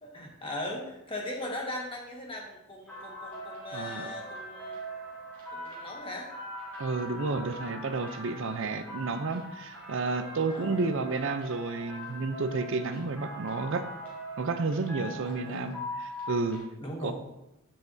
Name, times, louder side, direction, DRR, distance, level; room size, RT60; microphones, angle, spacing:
voice 1, 0.0-4.8 5.5-6.3 10.5-10.9 15.2-15.7 16.8-17.1, left 1 dB, 25° left, 0 dB, 1.5 m, -39 dB
sound 1, 2.9-16.6, equal, 10° left, 3.3 m, -42 dB
voice 2, 3.7-4.1 6.8-13.8 14.4-16.6 17.0-17.1, right 3 dB, 60° right, 9 dB, 0.5 m, -31 dB
10.5 x 7.6 x 2.7 m, 0.89 s
head